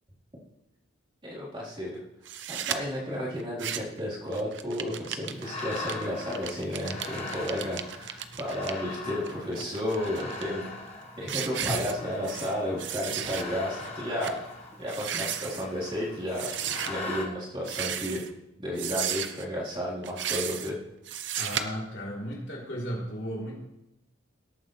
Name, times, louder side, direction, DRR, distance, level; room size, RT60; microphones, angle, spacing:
voice 1, 1.2-2.0 2.5-10.6 11.2-14.4 14.8-18.2 18.6-20.8, equal, 25° right, -8 dB, 4.0 m, -32 dB
sound 1, 2.3-2.8 3.4-4.0 4.3-8.7 9.3-10.4 10.9-11.0 11.3-12.5 12.8-13.4 13.8-13.9 14.2-14.4 14.8-15.7 16.3-16.9 17.6-18.3 18.8-19.4 20.0-20.7 21.1-21.6, right 9 dB, 65° right, 0.7 m, -34 dB
sound 2, 5.3-17.3, left 2 dB, 30° left, 1.4 m, -40 dB
voice 2, 21.3-23.6, equal, 65° left, -4 dB, 3.5 m, -35 dB
18.0 x 9.0 x 3.3 m, 0.91 s
head